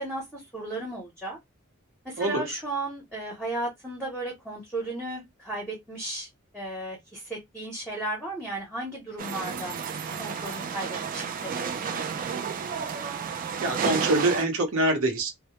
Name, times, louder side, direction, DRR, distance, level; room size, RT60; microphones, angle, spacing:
voice 1, 0.0-1.4 2.0-6.3 6.5-9.7 10.2-12.0, right 1 dB, 5° left, 0.7 m, -35 dB
voice 2, 2.2-2.5 13.6-15.3, right 2 dB, 70° right, 0.9 m, -25 dB
sound 1, 9.2-14.4, right 6 dB, 40° right, 0.4 m, -31 dB
2.1 x 2.0 x 2.9 m
head